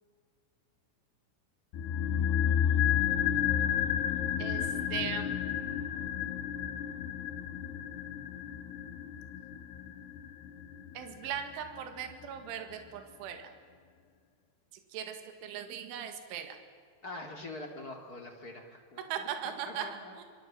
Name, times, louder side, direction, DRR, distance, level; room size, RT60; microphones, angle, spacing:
sound 1, 1.7-12.0 12.2-12.3, left 9 dB, 70° left, 2.8 m, -31 dB
voice 1, 4.4-5.4 10.9-13.5 14.9-16.6 19.1-19.9 20.1-20.2, right 9 dB, 70° right, 6 dB, 4.3 m, -39 dB
voice 2, 17.0-20.1, left 2 dB, 30° left, 2 dB, 1.7 m, -44 dB
26.5 x 24.5 x 7.6 m, 2.1 s
omnidirectional pair, 5.8 m